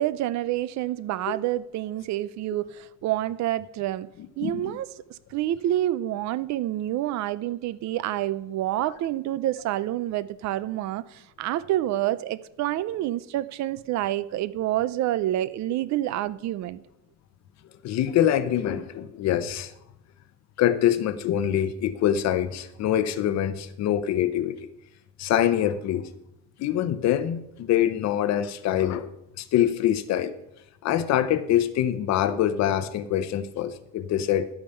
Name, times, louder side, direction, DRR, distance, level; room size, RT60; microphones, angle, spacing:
voice 1, 0.0-4.1 4.4-16.8, right 14 dB, 55° right, 0.6 m, -28 dB
voice 2, 4.4-4.8 17.8-19.7 20.6-24.7 25.2-26.1 26.6-29.1 29.4-30.3 30.8-34.5, left 11 dB, 55° left, 0.8 m, -24 dB
11.5 x 8.7 x 5.6 m
cardioid pair, 170°, 33 cm